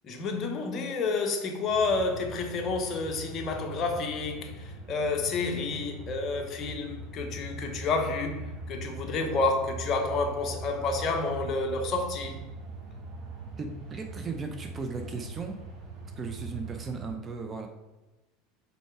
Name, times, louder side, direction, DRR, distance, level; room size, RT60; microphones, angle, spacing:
voice 1, 0.0-12.4, left 3 dB, 40° left, 1.1 m, -30 dB
sound 1, 1.7-17.1, right 2 dB, 50° right, 2.2 m, -41 dB
voice 2, 13.6-15.6 16.2-17.7, right 4 dB, 30° right, 0.7 m, -36 dB
5.5 x 4.4 x 4.7 m
supercardioid pair, 110°, 0 cm